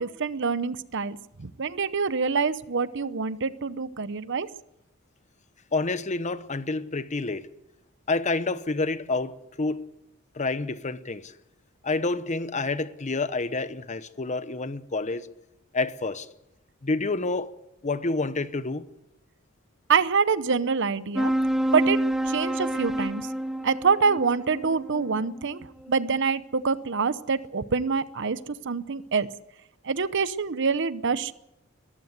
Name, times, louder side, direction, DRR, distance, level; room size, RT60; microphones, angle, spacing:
voice 1, 0.0-4.5 19.9-21.3 21.7-23.3 23.6-29.3 29.8-31.3, right 5 dB, 60° right, 0.8 m, -26 dB
voice 2, 5.7-7.5 8.1-9.8 10.3-11.3 11.8-15.3 15.7-16.3 16.8-17.5 17.8-18.8, left 3 dB, 35° left, 0.9 m, -28 dB
sound 1, 21.2-26.0, right 1 dB, ahead, 0.7 m, -28 dB
21.5 x 15.0 x 8.1 m
head